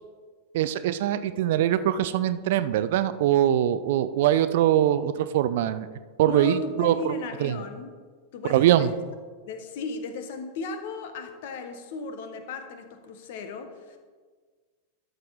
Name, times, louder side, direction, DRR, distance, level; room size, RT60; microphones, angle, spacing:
voice 1, 0.5-5.9 6.2-7.1 7.4-7.6 8.5-8.9, right 11 dB, 55° right, 13 dB, 0.4 m, -22 dB
voice 2, 6.3-7.9 8.3-8.9 9.4-14.0, left 3 dB, 50° left, 7 dB, 1.1 m, -35 dB
12.5 x 6.5 x 4.0 m, 1.5 s
figure-of-eight pair, 90°, 0 cm